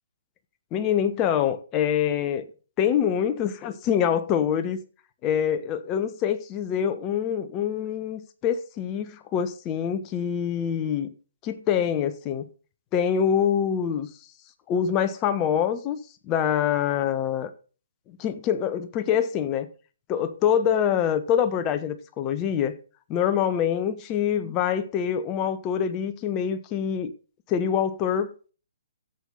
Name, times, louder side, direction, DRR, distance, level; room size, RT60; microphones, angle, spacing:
voice 1, 0.7-2.4 2.8-4.8 5.2-11.1 11.4-12.5 12.9-14.1 14.7-16.0 16.3-17.5 18.1-19.7 20.1-22.7 23.1-27.1 27.5-28.5, left 8 dB, 25° left, 1.3 m, -25 dB
13.0 x 8.3 x 4.0 m
figure-of-eight pair, 130°, 0 cm